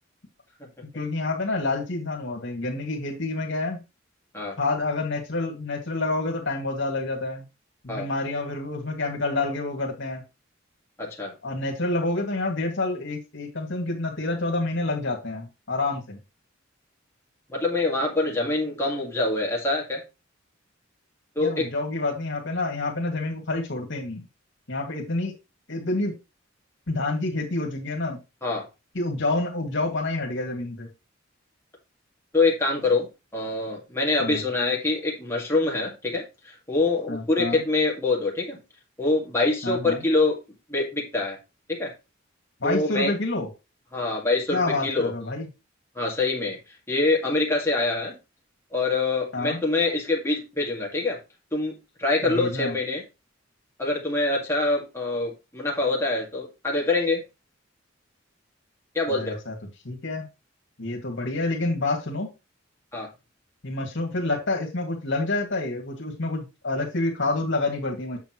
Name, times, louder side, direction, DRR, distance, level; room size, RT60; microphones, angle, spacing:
voice 1, 0.8-3.8 4.6-7.5 7.8-10.2 11.4-16.2 21.4-24.2 24.7-25.3 25.7-26.1 26.9-28.2 28.9-30.9 34.2-34.4 37.1-37.6 39.6-40.0 42.6-43.5 44.5-45.5 49.3-49.6 52.2-52.8 59.1-59.5 59.8-60.3 60.8-62.3 63.6-68.2, left 2 dB, 65° left, 2.3 m, -28 dB
voice 2, 11.0-11.3 17.5-20.0 21.4-21.7 28.4-28.7 32.3-38.6 39.0-40.4 40.7-41.4 41.7-41.9 42.6-43.1 43.9-45.1 46.0-46.6 46.9-48.1 48.7-51.2 51.5-53.0 53.8-57.2 58.9-59.4 62.9-63.1, left 2 dB, 15° left, 2.2 m, -25 dB
8.4 x 7.1 x 3.1 m
head